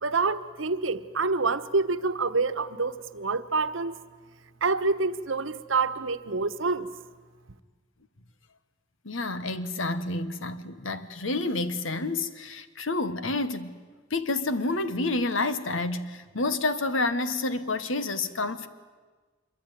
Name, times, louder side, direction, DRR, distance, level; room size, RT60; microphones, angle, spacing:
voice 1, 0.0-4.0 4.6-6.9, right 4 dB, 75° right, 1.2 m, -27 dB
voice 2, 9.0-13.8 14.1-18.7, left 2 dB, 75° left, 1.4 m, -29 dB
25.5 x 23.5 x 9.4 m
head